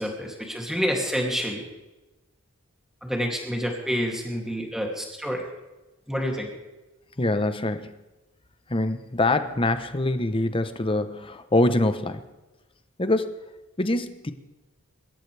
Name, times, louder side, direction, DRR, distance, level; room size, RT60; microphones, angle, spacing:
voice 1, 0.0-1.6 3.0-5.4 6.1-6.5, equal, ahead, 0 dB, 2.6 m, -28 dB
voice 2, 7.2-7.9 8.7-12.2 13.0-13.4 13.8-14.3, left 2 dB, 25° left, 10 dB, 0.9 m, -24 dB
24.5 x 13.0 x 3.4 m, 1.1 s
head